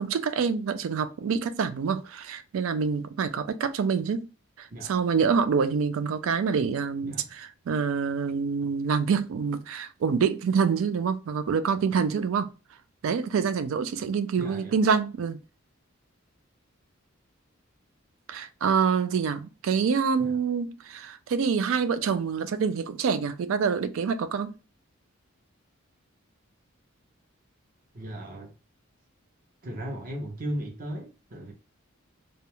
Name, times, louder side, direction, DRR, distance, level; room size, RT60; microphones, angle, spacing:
voice 1, 0.0-4.3 4.6-12.5 13.0-15.4 18.3-24.5, right 6 dB, 75° right, 0.3 m, -26 dB
voice 2, 14.3-14.8 20.2-20.4 27.9-28.6 29.6-31.5, right 1 dB, 45° right, 0.7 m, -36 dB
2.3 x 2.0 x 2.9 m
head